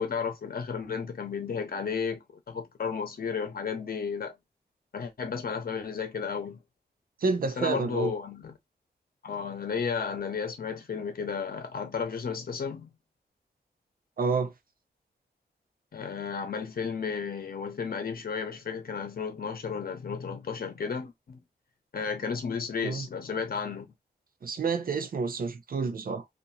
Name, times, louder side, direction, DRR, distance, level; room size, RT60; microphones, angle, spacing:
voice 1, 0.0-4.3 4.9-6.6 7.6-8.5 9.2-12.9 15.9-21.4 21.9-23.9, left 6 dB, 60° left, 0.8 m, -33 dB
voice 2, 7.2-8.1 14.2-14.5 22.8-23.0 24.4-26.2, right 4 dB, 60° right, 0.5 m, -29 dB
2.8 x 2.5 x 2.6 m
wide cardioid pair, 145°, 17 cm